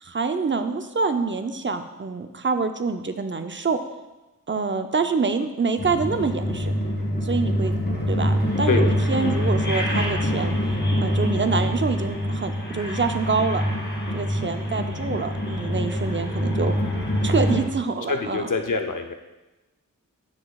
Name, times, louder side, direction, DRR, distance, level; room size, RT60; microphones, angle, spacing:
voice 1, 0.0-3.8 4.5-6.7 7.2-7.7 8.1-10.6 11.0-13.6 14.1-16.8 17.2-18.5, right 4 dB, 35° right, 8 dB, 0.5 m, -26 dB
sound 1, 5.8-17.6, equal, 30° left, 2.2 m, -25 dB
voice 2, 18.1-19.1, left 4 dB, 70° left, 6 dB, 0.7 m, -25 dB
9.6 x 6.7 x 2.3 m, 1.1 s
wide cardioid pair, 45°, 33 cm